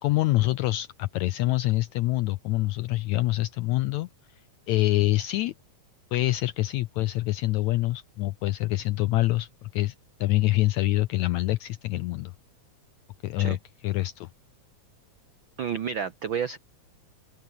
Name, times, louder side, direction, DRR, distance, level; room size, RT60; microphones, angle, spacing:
voice 1, 0.0-4.1 4.7-5.5 6.1-9.9 10.2-12.3 13.2-13.6 13.8-14.3, left 18 dB, 85° left, 1.6 m, -25 dB
voice 2, 15.6-16.6, right 7 dB, 80° right, 1.0 m, -30 dB
open air
omnidirectional pair, 3.9 m